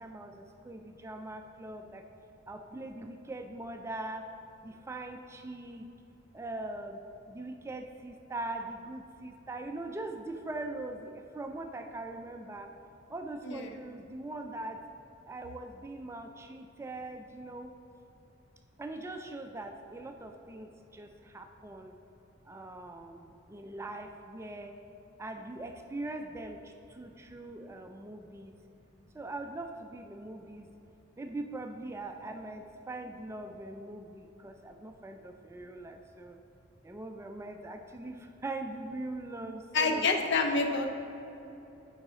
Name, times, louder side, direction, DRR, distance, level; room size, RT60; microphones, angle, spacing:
voice 1, 0.0-2.0 2.5-4.3 4.6-5.9 6.3-12.7 13.1-14.8 15.3-17.7 18.8-21.9 22.4-24.7 25.2-28.6 29.1-30.7 31.2-36.4 36.8-40.1, right 2 dB, 15° right, 5 dB, 0.3 m, -41 dB
voice 2, 39.7-40.9, left 3 dB, 60° left, 5 dB, 0.6 m, -27 dB
9.1 x 4.8 x 3.7 m, 3.0 s
head